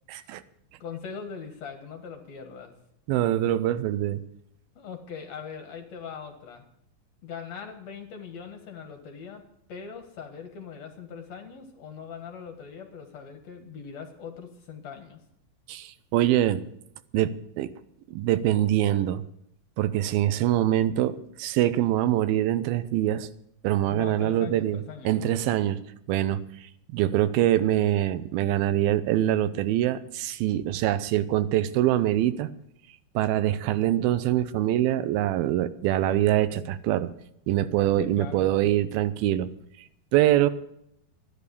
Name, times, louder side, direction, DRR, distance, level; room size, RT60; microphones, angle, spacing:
voice 1, 0.1-0.4 3.1-4.2 15.7-16.6 17.1-17.7 18.1-19.2 19.8-23.3 23.6-25.8 26.1-26.4 26.9-32.5 33.2-37.1 37.5-39.5 40.1-40.5, right 13 dB, 85° right, 14 dB, 2.6 m, -24 dB
voice 2, 0.8-2.7 4.8-6.6 7.2-9.4 9.7-15.2 23.9-25.2 38.0-38.5, left 6 dB, 60° left, 5 dB, 2.2 m, -41 dB
13.5 x 10.5 x 6.8 m, 0.75 s
omnidirectional pair, 4.2 m